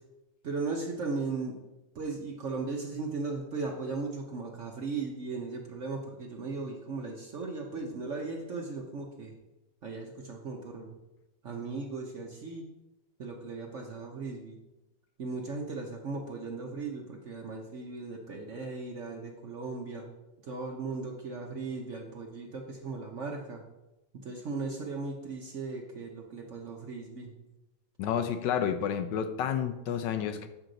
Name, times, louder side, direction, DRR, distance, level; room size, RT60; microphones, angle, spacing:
voice 1, 0.4-1.6 1.9-9.3 9.8-11.0 11.4-12.7 13.2-14.6 15.2-20.1 20.4-23.6 24.2-27.3, right 4 dB, 55° right, 1 dB, 0.9 m, -37 dB
voice 2, 28.0-30.5, left 8 dB, 75° left, 9 dB, 1.2 m, -30 dB
7.3 x 6.3 x 3.9 m, 0.98 s
omnidirectional pair, 2.0 m